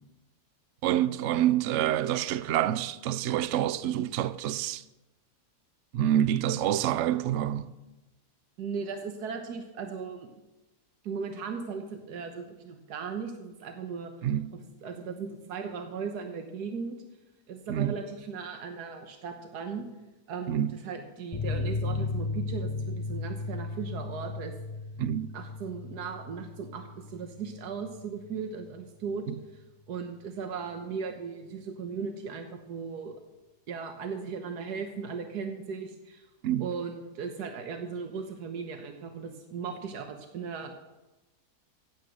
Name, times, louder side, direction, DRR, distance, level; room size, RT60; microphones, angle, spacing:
voice 1, 0.8-4.8 5.9-7.7 14.2-14.5 17.7-17.9 20.5-20.8 25.0-25.3 29.3-29.4 36.4-36.7, right 11 dB, 65° right, 0.8 m, -27 dB
voice 2, 8.6-10.3 11.0-14.1 14.5-17.0 17.5-19.9 20.3-24.5 25.3-29.3 29.9-33.1 33.7-36.3 36.6-40.7, right 5 dB, 85° right, 1.6 m, -37 dB
sound 1, 21.3-28.4 28.7-28.8 29.1-29.2, left 3 dB, 30° left, 0.6 m, -35 dB
15.5 x 9.2 x 6.4 m
omnidirectional pair, 1.7 m